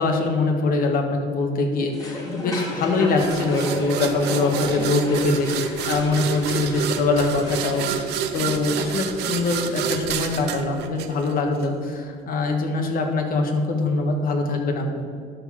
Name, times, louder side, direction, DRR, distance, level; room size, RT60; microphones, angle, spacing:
voice 1, 0.0-15.0, left 3 dB, 60° left, 3 dB, 1.5 m, -23 dB
sound 1, 1.9-7.8, left 1 dB, 20° left, 2.4 m, -33 dB
sound 2, 3.2-11.7, right 7 dB, 80° right, 0.7 m, -29 dB
12.0 x 4.1 x 6.2 m, 2.3 s
cardioid pair, 110°, 17 cm